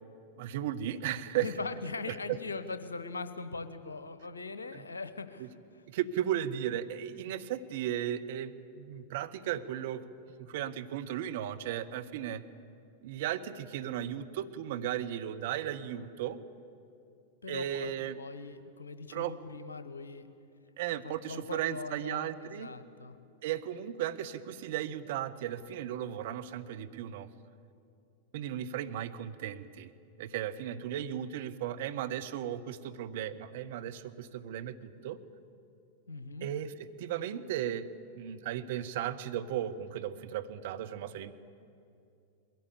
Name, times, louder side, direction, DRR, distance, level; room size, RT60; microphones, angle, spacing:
voice 1, 0.4-1.5 2.3-2.4 4.7-4.8 5.4-5.5 5.9-10.0 10.4-12.4 13.0-16.4 17.5-18.2 19.1-19.3 20.8-22.7 23.4-27.3 28.3-29.9 30.2-35.2 36.4-36.7 37.0-37.9 38.1-41.3, right 11 dB, 55° right, 10 dB, 0.9 m, -35 dB
voice 2, 1.4-5.8 17.4-20.3 21.0-23.2 36.1-36.5, left 3 dB, 75° left, 11 dB, 1.1 m, -41 dB
21.5 x 16.5 x 8.3 m, 2.6 s
figure-of-eight pair, 95°, 0 cm